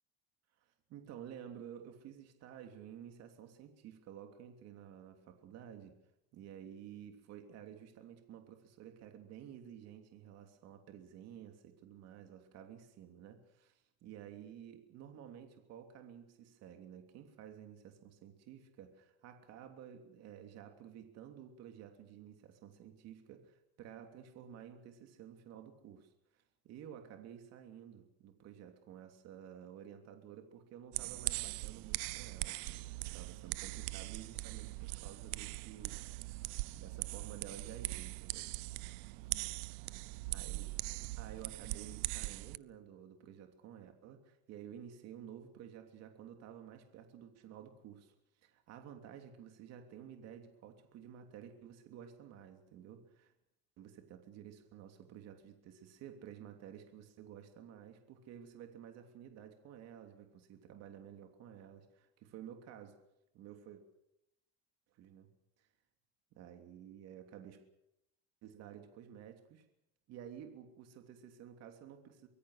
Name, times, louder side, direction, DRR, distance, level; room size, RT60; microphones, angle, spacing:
voice 1, 0.6-6.0 6.3-36.4 36.7-38.5 40.3-40.7 41.2-48.1 48.4-53.3 53.8-63.0 63.3-63.8 64.9-65.3 65.6-65.7 66.3-67.6 68.4-69.6 70.1-72.3, right 9 dB, 55° right, 6 dB, 3.1 m, -52 dB
sound 1, 30.9-42.6, right 22 dB, 80° right, 0.8 m, -41 dB
24.5 x 21.5 x 6.6 m, 0.82 s
cardioid pair, 155°, 31 cm